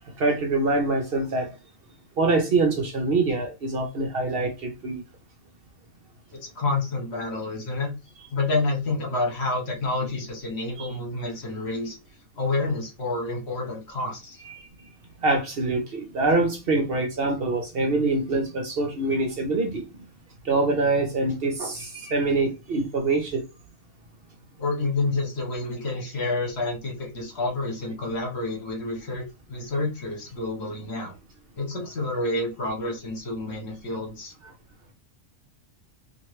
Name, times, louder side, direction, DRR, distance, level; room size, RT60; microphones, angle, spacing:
voice 1, 0.2-1.5 2.2-5.0 10.8-10.9 15.2-20.0 20.4-23.4 34.4-34.5, right 3 dB, 55° right, 0.7 m, -24 dB
voice 2, 6.3-7.9 8.3-12.0 12.4-14.4 24.6-29.2 29.5-31.1 31.6-34.3, left 2 dB, 55° left, 1.2 m, -29 dB
2.9 x 2.6 x 3.0 m
omnidirectional pair, 1.4 m